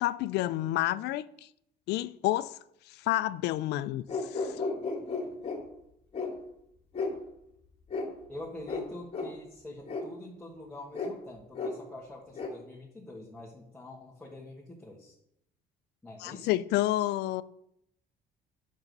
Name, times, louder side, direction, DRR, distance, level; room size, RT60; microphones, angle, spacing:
voice 1, 0.0-1.3 1.9-2.6 2.9-4.6 16.2-17.4, left 15 dB, 80° left, 0.4 m, -29 dB
sound 1, 4.1-5.6 6.1-6.3 6.9-7.2 7.9-8.1 8.7-8.8 9.1-9.3 9.9-10.0 10.9-11.1 11.5-11.7 12.3-12.5, left 4 dB, 35° left, 2.2 m, -33 dB
voice 2, 8.3-15.1 16.0-16.6, left 1 dB, 5° left, 1.6 m, -45 dB
7.3 x 6.3 x 5.4 m
cardioid pair, 110°, 17 cm